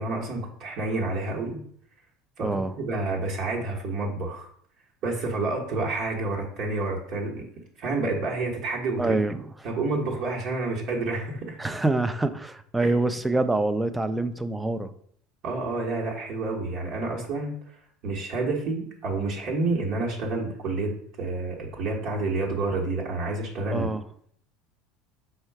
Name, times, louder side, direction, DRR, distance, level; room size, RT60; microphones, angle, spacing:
voice 1, 0.0-1.6 2.4-4.5 5.0-7.4 7.8-9.2 9.6-11.6 12.8-12.9 15.4-17.8 18.0-23.9, right 3 dB, 60° right, -2 dB, 1.1 m, -29 dB
voice 2, 2.4-2.7 9.0-9.4 11.6-14.9 23.7-24.0, right 2 dB, 10° right, 11 dB, 0.4 m, -25 dB
4.5 x 2.2 x 4.5 m, 0.63 s
supercardioid pair, 95°, 0 cm